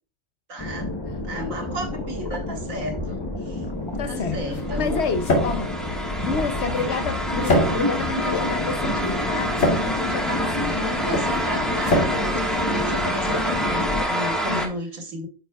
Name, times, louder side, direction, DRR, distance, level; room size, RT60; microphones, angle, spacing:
voice 1, 0.5-0.9 1.2-5.0 10.2-15.3, right 1 dB, 80° right, 2.0 m, -34 dB
sound 1, 0.6-14.0, left 2 dB, 20° left, 0.8 m, -29 dB
sound 2, 3.6-13.4, left 1 dB, 75° left, 2.4 m, -28 dB
voice 2, 4.0-5.7 6.3-11.2 14.4-14.6, left 4 dB, 60° left, 0.9 m, -29 dB
sound 3, 4.6-14.7, equal, ahead, 1.2 m, -28 dB
9.1 x 6.3 x 2.3 m
omnidirectional pair, 1.4 m